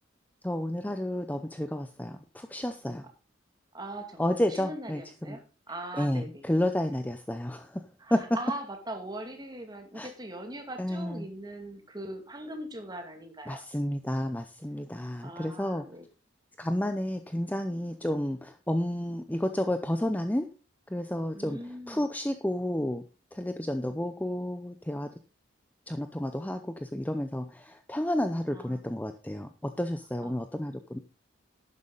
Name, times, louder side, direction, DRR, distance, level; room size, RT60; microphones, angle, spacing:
voice 1, 0.4-3.1 4.2-5.4 6.0-7.8 8.1-8.3 9.9-10.1 10.8-11.3 13.5-15.8 16.6-20.5 20.9-21.6 21.9-23.0 23.3-25.1 25.9-31.0, left 1 dB, 10° left, 8 dB, 0.6 m, -31 dB
voice 2, 3.7-6.4 8.0-13.6 15.2-16.1 21.3-22.1 28.5-28.8 30.2-30.4, right 1 dB, 20° right, 5 dB, 2.2 m, -41 dB
11.5 x 9.7 x 3.9 m, 0.33 s
head